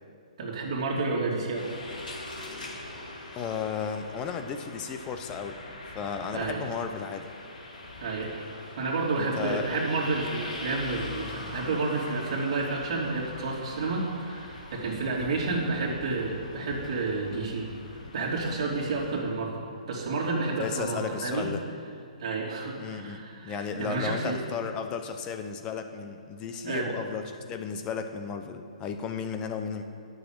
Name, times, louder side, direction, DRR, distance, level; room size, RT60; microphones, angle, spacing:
voice 1, 0.4-1.7 6.3-6.7 8.0-8.3 8.8-17.7 18.1-19.5 19.9-21.5 22.2-24.4 26.6-26.9, right 3 dB, 45° right, -3 dB, 2.7 m, -30 dB
sound 1, 1.5-19.2, left 2 dB, 85° left, 2.4 m, -42 dB
voice 2, 3.3-5.6 5.9-7.3 9.2-9.7 20.6-21.6 22.8-29.8, left 6 dB, 15° left, 6 dB, 0.7 m, -34 dB
10.0 x 6.5 x 8.8 m, 2.5 s
hypercardioid pair, 160°, 4 cm